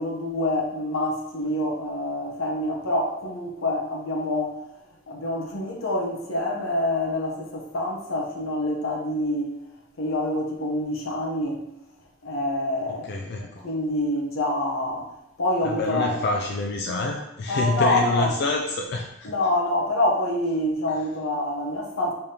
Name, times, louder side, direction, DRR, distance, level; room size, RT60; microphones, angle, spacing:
voice 1, 0.0-4.6 5.1-9.6 10.0-11.6 12.2-13.1 13.6-15.1 15.4-16.2 17.5-18.3 19.2-22.1, left 1 dB, 90° left, -1 dB, 0.9 m, -26 dB
voice 2, 13.1-13.5 15.6-19.3, left 3 dB, 55° left, 2 dB, 0.4 m, -27 dB
5.3 x 3.4 x 2.8 m, 0.85 s
head